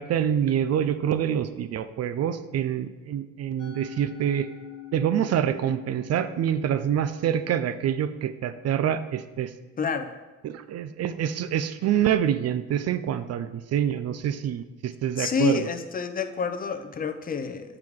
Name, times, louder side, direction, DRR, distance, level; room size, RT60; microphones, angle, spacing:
voice 1, 0.0-4.5 4.9-9.5 10.4-15.7, right 9 dB, 55° right, 12 dB, 0.5 m, -26 dB
Musical instrument, 3.6-10.0, left 12 dB, 75° left, 1.3 m, -46 dB
voice 2, 9.8-10.1 15.2-17.8, left 4 dB, 30° left, 8 dB, 0.6 m, -28 dB
7.7 x 4.8 x 3.6 m, 1.1 s
cardioid pair, 90°, 30 cm